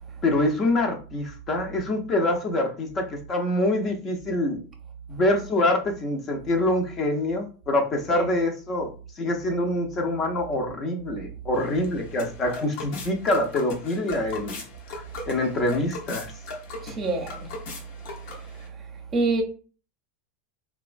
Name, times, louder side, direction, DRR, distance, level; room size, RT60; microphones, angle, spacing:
voice 1, 0.2-4.6 5.1-14.6 15.3-16.3, left 1 dB, 35° left, 0.6 m, -25 dB
sound 1, 11.5-18.7, left 3 dB, 65° left, 0.8 m, -39 dB
voice 2, 16.8-17.5 18.6-18.7 19.1-19.4, right 2 dB, 30° right, 0.7 m, -26 dB
2.9 x 2.2 x 2.5 m
hypercardioid pair, 110°, 0 cm